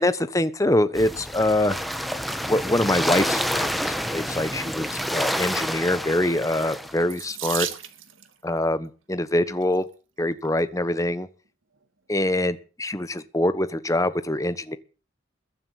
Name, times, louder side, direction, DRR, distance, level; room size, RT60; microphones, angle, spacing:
voice 1, 0.0-1.8 2.5-7.7 8.4-9.8 10.2-11.3 12.1-14.8, left 1 dB, 15° left, 13 dB, 1.2 m, -24 dB
sound 1, 0.9-7.0, equal, ahead, 1.4 m, -28 dB
Water tap faucet / Sink (filling or washing), 7.1-8.3 9.4-9.8 10.4-10.5 10.9-11.0, right 11 dB, 85° right, 2.2 m, -34 dB
21.5 x 7.6 x 8.5 m, 0.37 s
head